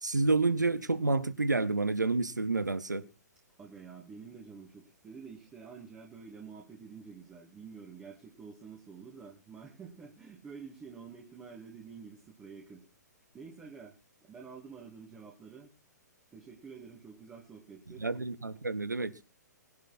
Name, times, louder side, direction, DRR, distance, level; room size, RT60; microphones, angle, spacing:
voice 1, 0.0-3.0 18.0-19.1, right 3 dB, 75° right, 1.7 m, -29 dB
voice 2, 3.6-12.8 13.3-15.7 16.3-18.1, right 5 dB, 15° right, 2.8 m, -49 dB
21.5 x 11.0 x 4.4 m
figure-of-eight pair, 120°, 10 cm